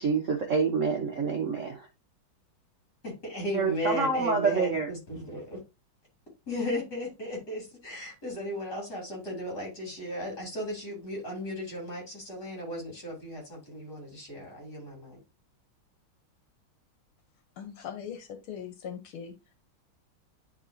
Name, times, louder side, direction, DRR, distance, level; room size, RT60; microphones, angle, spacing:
voice 1, 0.0-1.9 3.6-4.9, right 5 dB, 55° right, 0.9 m, -27 dB
voice 2, 3.0-5.6 6.5-15.2, left 1 dB, 50° left, 4.0 m, -36 dB
voice 3, 17.6-19.3, left 8 dB, 80° left, 1.9 m, -40 dB
10.5 x 3.7 x 2.8 m
omnidirectional pair, 2.3 m